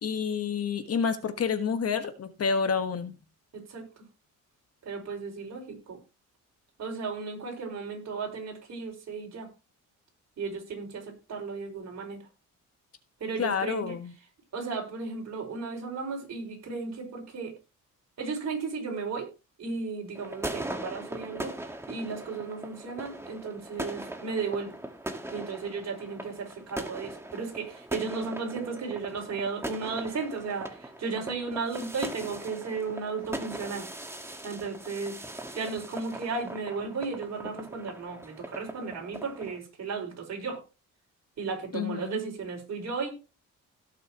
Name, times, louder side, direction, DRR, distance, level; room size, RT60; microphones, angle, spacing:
voice 1, 0.0-3.2 13.4-14.1 41.7-42.2, left 6 dB, 50° left, 10 dB, 1.4 m, -29 dB
voice 2, 3.5-3.9 4.8-6.0 6.8-9.5 10.4-12.2 13.2-13.9 14.5-17.6 18.2-19.3 19.6-21.5 21.9-24.8 25.3-33.9 34.4-35.2 35.5-40.6 41.4-43.1, right 4 dB, 55° right, 1 dB, 5.3 m, -35 dB
sound 1, 20.1-39.6, right 1 dB, 10° right, 1.6 m, -40 dB
17.5 x 6.8 x 3.0 m, 0.30 s
cardioid pair, 105°, 32 cm